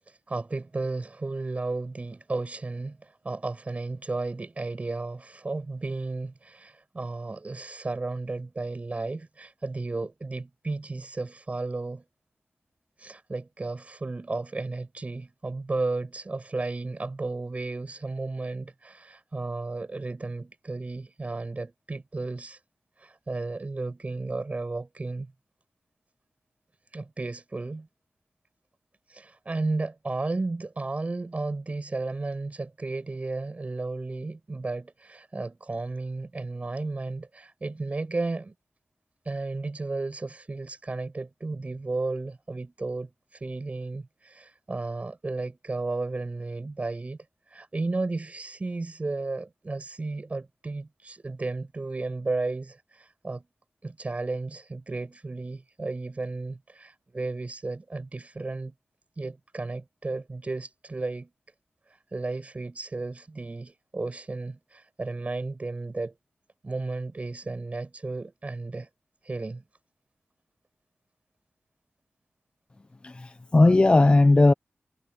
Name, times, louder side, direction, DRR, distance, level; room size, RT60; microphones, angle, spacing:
voice 1, 0.1-12.0 13.0-22.6 23.0-25.3 26.9-27.9 29.1-38.5 39.2-47.2 47.5-53.4 53.8-58.7 59.2-61.3 61.9-66.1 66.6-68.9 69.2-69.6, right 3 dB, 35° right, 6.6 m, -33 dB
voice 2, 73.0-74.5, left 2 dB, 30° left, 0.7 m, -18 dB
wide cardioid pair, 120°, 4 cm